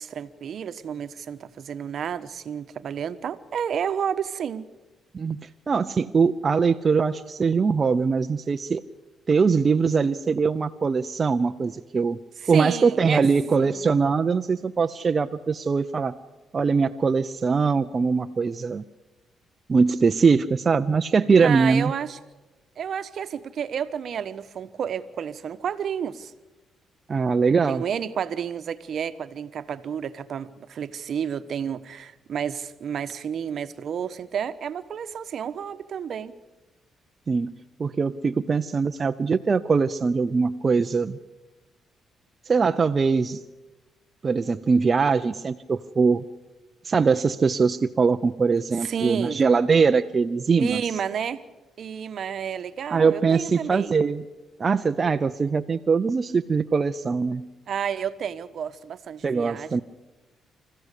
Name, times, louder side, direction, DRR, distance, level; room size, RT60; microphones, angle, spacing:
voice 1, 0.0-4.7 12.4-13.2 13.6-13.9 21.4-22.2 22.8-26.3 27.7-36.3 48.8-49.4 50.6-51.4 51.8-53.9 57.7-59.8, right 8 dB, 60° right, 1.1 m, -31 dB
voice 2, 5.1-8.8 9.3-12.2 12.5-16.2 16.5-18.8 19.7-21.9 27.1-27.8 37.3-37.5 37.8-41.2 42.5-43.4 44.2-46.2 46.8-50.8 52.9-54.2 54.6-57.5 59.2-59.8, right 5 dB, 35° right, 0.7 m, -22 dB
26.0 x 15.0 x 8.4 m
cardioid pair, 90°, 0 cm